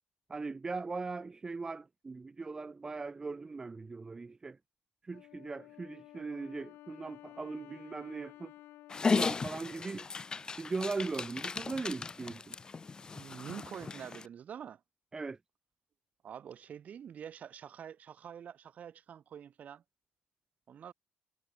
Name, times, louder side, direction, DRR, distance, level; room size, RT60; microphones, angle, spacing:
voice 1, 0.3-4.6 5.0-8.5 9.1-10.1 10.6-12.5 15.1-15.4, right 4 dB, 20° right, 0.7 m, -39 dB
Wind instrument woodwind instrument, 5.1-10.5, left 16 dB, 85° left, 4.3 m, -54 dB
Dog, 8.9-14.2, left 4 dB, 20° left, 0.4 m, -35 dB
voice 2, 13.1-14.8 16.2-19.8 20.7-20.9, right 8 dB, 45° right, 4.3 m, -46 dB
cardioid pair, 140°, 4 cm